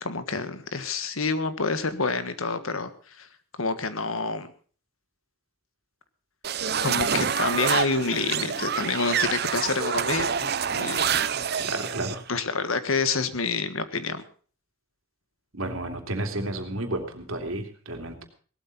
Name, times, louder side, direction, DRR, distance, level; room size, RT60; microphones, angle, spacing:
voice 1, 0.0-2.9 3.2-3.3 3.6-4.5 6.8-11.2 11.5-11.7 12.3-14.2, left 4 dB, 90° left, 11 dB, 1.6 m, -28 dB
sound 1, 6.4-12.2, right 7 dB, 50° right, 0.7 m, -27 dB
voice 2, 11.6-12.2 15.5-18.2, right 1 dB, 85° right, 4 dB, 2.9 m, -32 dB
18.0 x 13.0 x 4.2 m, 0.42 s
head